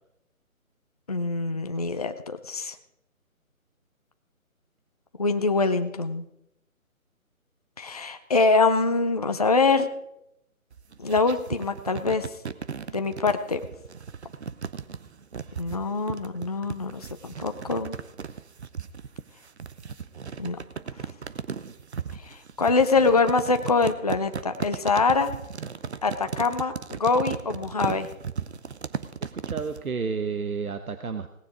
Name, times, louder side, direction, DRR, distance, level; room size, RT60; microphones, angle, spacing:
voice 1, 1.1-2.8 5.2-6.3 7.8-9.9 11.0-12.3 12.9-13.6 15.6-18.0 20.4-20.6 22.2-25.3 26.0-28.1, left 4 dB, 30° left, 8 dB, 0.5 m, -24 dB
sound 1, 10.7-29.8, right 6 dB, 50° right, 0.8 m, -36 dB
voice 2, 29.2-31.3, right 5 dB, 80° right, 8 dB, 1.1 m, -31 dB
17.5 x 9.5 x 4.9 m, 0.82 s
figure-of-eight pair, 150°, 43 cm